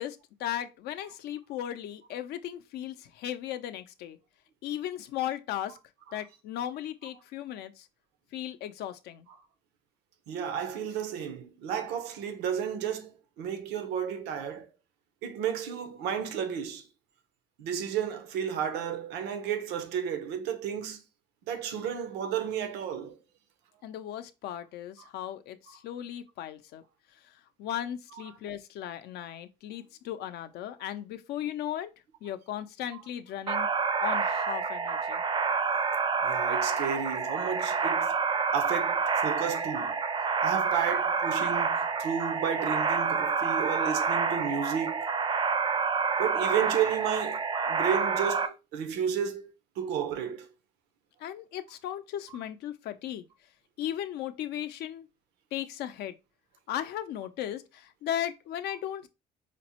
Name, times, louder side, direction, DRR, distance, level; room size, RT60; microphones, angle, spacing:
voice 1, 0.0-4.2 4.6-5.8 6.1-7.9 8.3-9.3 23.8-26.8 27.2-31.9 32.2-33.7 34.0-35.2 51.2-53.3 53.8-55.1 55.5-56.1 56.7-59.1, left 11 dB, 75° left, 0.5 m, -36 dB
voice 2, 10.3-14.7 15.2-16.9 17.6-21.0 21.5-23.2 36.2-38.2 38.5-39.9 40.4-45.1 46.2-50.5 52.3-52.4, right 8 dB, 90° right, 0.6 m, -32 dB
sound 1, 33.5-48.5, right 5 dB, 30° right, 0.4 m, -28 dB
5.0 x 2.0 x 2.8 m
cardioid pair, 110°, 17 cm